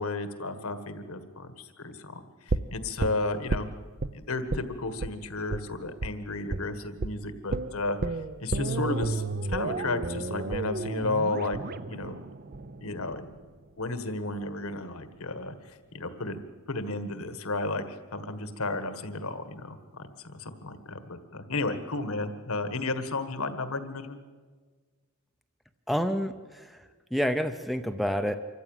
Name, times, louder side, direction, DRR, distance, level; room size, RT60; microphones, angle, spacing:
voice 1, 0.0-2.2 2.7-3.7 4.1-8.0 8.4-9.2 9.5-11.6 11.9-12.2 12.8-13.3 13.8-16.4 16.7-24.2, left 2 dB, 75° left, 9 dB, 1.7 m, -33 dB
sound 1, 2.5-4.1 4.5-4.7 5.0-5.1 5.5-5.6 6.0-6.1 6.5-6.7 7.0-7.1 7.5-13.5 13.8-13.9, right 3 dB, 45° right, 0.6 m, -32 dB
voice 2, 25.9-26.8 27.1-28.4, equal, ahead, 8 dB, 0.6 m, -28 dB
26.0 x 14.5 x 9.1 m, 1.5 s
head